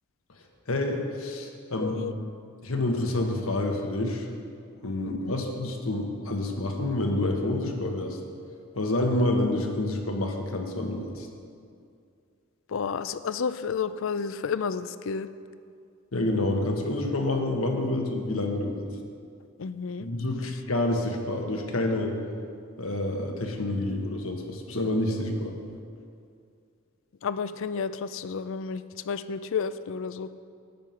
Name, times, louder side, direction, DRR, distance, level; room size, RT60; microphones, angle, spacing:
voice 1, 0.7-2.0 2.6-4.3 4.8-8.2 8.7-11.3 16.1-18.9 20.0-22.2 22.8-25.5, left 1 dB, 85° left, 3 dB, 1.4 m, -28 dB
voice 2, 1.8-2.1 5.1-5.4 12.7-15.3 19.6-20.1 27.2-30.3, left 6 dB, 65° left, 14 dB, 0.4 m, -31 dB
11.0 x 9.4 x 5.8 m, 2.4 s
head